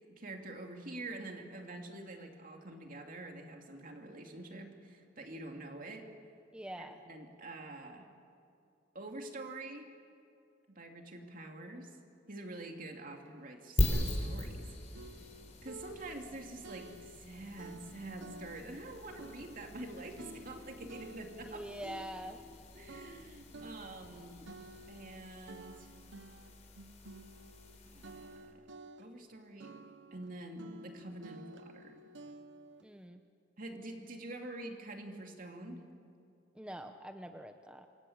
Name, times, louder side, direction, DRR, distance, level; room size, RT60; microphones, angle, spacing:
voice 1, 0.0-6.1 6.8-8.1 8.9-9.9 10.7-11.9 12.3-14.7 15.6-21.6 22.7-24.5 24.9-25.9 27.8-28.7 29.0-29.7 30.1-32.0 33.6-35.8, right 2 dB, 50° right, 3 dB, 2.9 m, -46 dB
voice 2, 6.5-7.0 21.4-22.4 32.8-33.2 36.5-37.9, right 1 dB, 5° right, 6 dB, 0.9 m, -45 dB
sound 1, 13.3-13.4 13.9-14.7 14.9-17.3 17.6-18.9 19.2-22.6 22.9-27.8 28.0-29.3 29.6-32.9, right 2 dB, 80° right, 1.0 m, -52 dB
sound 2, 13.8-28.5, left 1 dB, 40° left, 3.8 m, -41 dB
27.5 x 23.0 x 8.8 m, 2.5 s
head